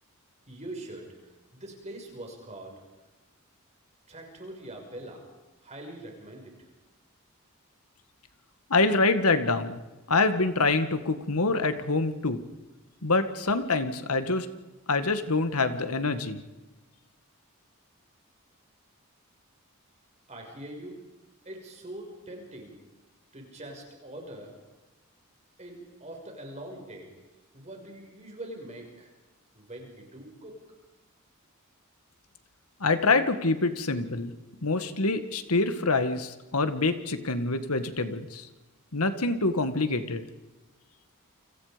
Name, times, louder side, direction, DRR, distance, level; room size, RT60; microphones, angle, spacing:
voice 1, 0.5-2.8 4.1-5.3 5.6-6.7 20.3-21.0 21.4-22.8 23.3-24.6 25.6-27.1 27.5-29.1 29.5-30.6, right 1 dB, 30° right, 2 dB, 5.9 m, -43 dB
voice 2, 8.7-9.8 10.1-12.4 13.0-14.5 14.9-16.4 32.8-34.3 34.6-38.5 38.9-40.3, left 3 dB, 80° left, 10 dB, 1.8 m, -26 dB
29.0 x 26.0 x 5.2 m, 1.1 s
head